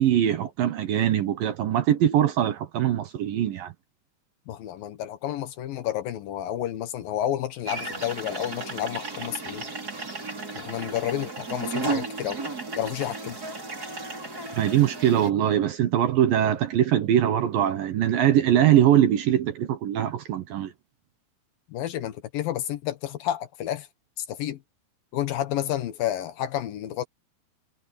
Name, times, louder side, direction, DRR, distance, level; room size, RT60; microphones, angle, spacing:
voice 1, 0.0-3.7 14.5-20.7, right 11 dB, 70° right, 2.3 m, -22 dB
voice 2, 4.5-9.6 10.5-12.4 12.8-13.4 21.7-23.9 24.2-24.6 25.1-27.0, left 12 dB, 70° left, 2.4 m, -30 dB
sound 1, 7.7-15.3, right 3 dB, 20° right, 4.7 m, -34 dB
omnidirectional pair, 5.3 m